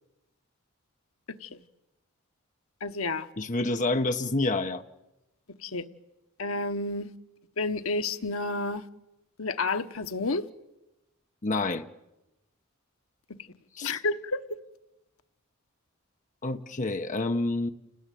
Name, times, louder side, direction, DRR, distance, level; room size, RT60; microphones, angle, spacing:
voice 1, 2.8-3.3 5.6-5.9 6.4-7.1 7.6-8.9 9.4-10.5 13.8-14.6, left 3 dB, 75° left, 1.2 m, -30 dB
voice 2, 3.4-4.8 11.4-11.8 13.8-14.0 16.4-17.7, left 2 dB, 35° left, 1.0 m, -28 dB
30.0 x 19.5 x 9.3 m
head